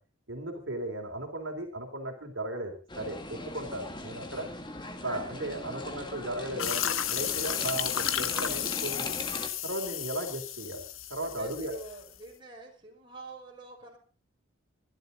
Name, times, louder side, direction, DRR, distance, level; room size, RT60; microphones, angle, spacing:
voice 1, 0.3-4.5 5.0-9.2 9.6-10.8 11.1-11.7, right 1 dB, 65° right, 3 dB, 3.3 m, -36 dB
sound 1, 2.9-9.5, left 2 dB, 20° left, 1.8 m, -39 dB
sound 2, 6.6-12.2, left 10 dB, 75° left, 1.4 m, -33 dB
voice 2, 11.2-14.0, right 3 dB, 25° right, -1 dB, 5.4 m, -46 dB
24.5 x 12.0 x 3.9 m, 0.35 s
head